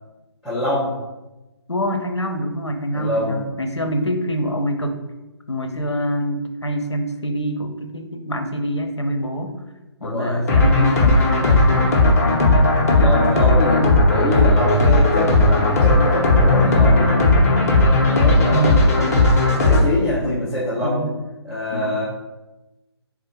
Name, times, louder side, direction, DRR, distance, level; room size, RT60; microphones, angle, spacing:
voice 1, 0.4-0.9 2.9-3.4 10.0-10.5 12.9-17.2 17.8-21.1 21.4-22.0, left 1 dB, ahead, -14 dB, 0.6 m, -25 dB
voice 2, 1.7-5.0 5.5-9.5 10.0-11.9 13.0-13.3 18.5-18.8 20.2-20.4 20.8-21.2 21.7-22.0, equal, 85° left, 5 dB, 0.6 m, -25 dB
sound 1, 10.5-19.8, left 2 dB, 35° left, 0.7 m, -16 dB
3.5 x 2.4 x 4.3 m, 1.0 s
figure-of-eight pair, 145°, 14 cm